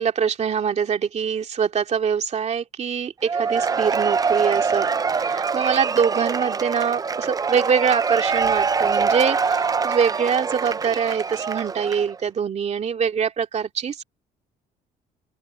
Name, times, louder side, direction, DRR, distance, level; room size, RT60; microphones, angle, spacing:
voice 1, 0.0-4.9 5.2-14.0, right 7 dB, 40° right, 2.5 m, -24 dB
Cheering / Applause / Crowd, 3.2-12.2, right 5 dB, 20° right, 0.5 m, -24 dB
open air
cardioid pair, 110°, 17 cm